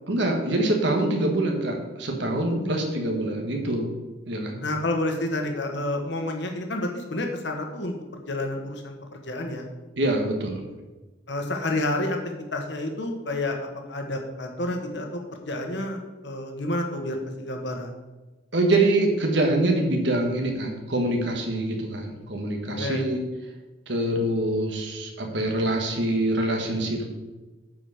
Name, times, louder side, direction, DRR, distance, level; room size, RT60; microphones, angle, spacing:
voice 1, 0.1-3.9 4.3-4.6 10.0-10.7 18.5-23.2 23.9-27.1, right 1 dB, 65° right, 2 dB, 1.6 m, -25 dB
voice 2, 4.6-7.9 8.3-9.7 11.3-12.2 12.5-13.6 13.9-15.1 15.5-16.0 16.2-17.9 22.7-23.0, left 1 dB, 60° left, 3 dB, 1.4 m, -29 dB
9.0 x 5.0 x 6.5 m, 1.2 s
head